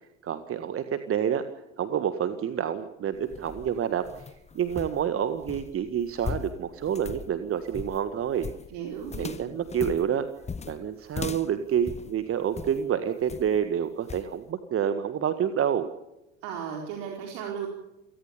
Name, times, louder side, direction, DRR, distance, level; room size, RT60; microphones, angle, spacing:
voice 1, 0.2-1.5 1.8-4.0 4.5-8.5 9.2-10.3 10.7-15.9, right 9 dB, 35° right, 10 dB, 1.7 m, -28 dB
sound 1, 3.1-12.8 13.3-13.6 14.1-14.3, left 5 dB, 15° left, 1.1 m, -39 dB
voice 2, 8.7-9.5 16.4-17.7, right 8 dB, 60° right, 1 dB, 4.4 m, -35 dB
29.5 x 18.0 x 6.9 m, 0.96 s
figure-of-eight pair, 70°, 39 cm